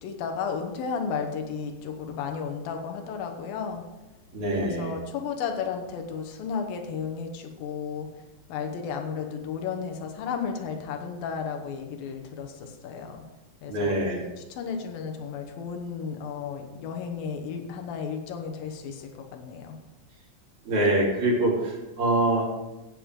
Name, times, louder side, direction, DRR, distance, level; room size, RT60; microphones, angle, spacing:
voice 1, 0.0-3.8 4.6-8.1 8.5-13.2 13.6-14.0 14.4-19.8, left 6 dB, 90° left, 4 dB, 2.8 m, -33 dB
voice 2, 4.3-4.9 13.7-14.2 20.7-22.4, right 1 dB, 55° right, -4 dB, 4.5 m, -24 dB
16.0 x 8.8 x 3.7 m, 1.1 s
omnidirectional pair, 4.0 m